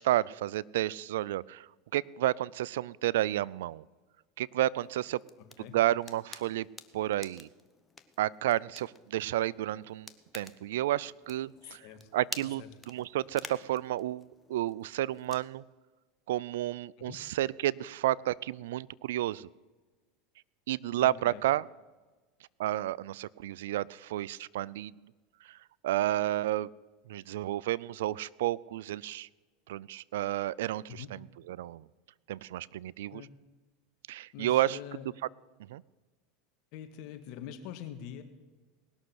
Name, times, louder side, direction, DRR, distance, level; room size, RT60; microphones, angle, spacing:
voice 1, 0.0-3.8 4.4-5.2 5.7-6.7 6.9-7.5 8.2-11.8 12.1-15.6 16.3-19.5 20.7-21.7 22.6-24.9 25.4-25.6 25.8-26.7 27.1-29.3 29.7-31.9 32.3-33.2 34.1-34.8 35.7-35.8, right 14 dB, 80° right, 23 dB, 0.3 m, -31 dB
sound 1, 4.8-15.5, left 3 dB, 15° left, 1.0 m, -50 dB
voice 2, 11.6-12.1 12.6-12.7 17.0-17.2 21.0-21.4 30.9-31.1 33.1-33.3 34.3-35.1 36.7-38.2, left 10 dB, 60° left, 7 dB, 1.8 m, -44 dB
19.0 x 6.5 x 7.9 m, 1.3 s
hypercardioid pair, 105°, 0 cm